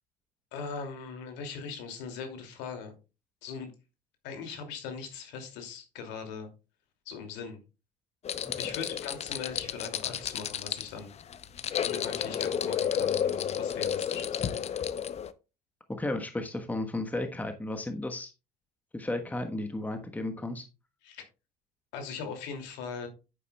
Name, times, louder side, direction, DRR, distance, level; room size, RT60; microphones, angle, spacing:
voice 1, 0.5-2.9 3.4-3.7 4.2-6.5 7.1-7.6 8.6-11.1 11.7-14.4 21.0-21.2 21.9-23.1, left 5 dB, 60° left, 5 dB, 2.7 m, -40 dB
sound 1, 8.2-15.3, left 8 dB, 30° left, 0.7 m, -32 dB
voice 2, 15.9-18.3 18.9-20.7, left 2 dB, 10° left, 6 dB, 1.3 m, -33 dB
10.0 x 9.2 x 2.3 m, 0.29 s
figure-of-eight pair, 60°, 20 cm